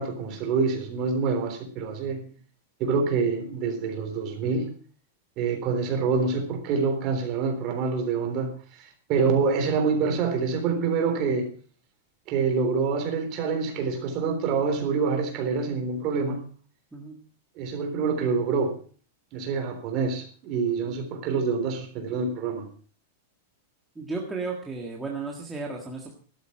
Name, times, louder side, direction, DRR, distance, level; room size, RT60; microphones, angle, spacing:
voice 1, 0.0-2.2 2.8-4.7 5.4-8.5 8.8-11.5 12.3-16.4 17.6-18.7 19.3-22.7, right 5 dB, 35° right, 5 dB, 3.5 m, -26 dB
voice 2, 23.9-26.2, right 3 dB, 5° right, -2 dB, 1.7 m, -34 dB
13.5 x 12.5 x 4.8 m, 0.41 s
supercardioid pair, 165°, 0 cm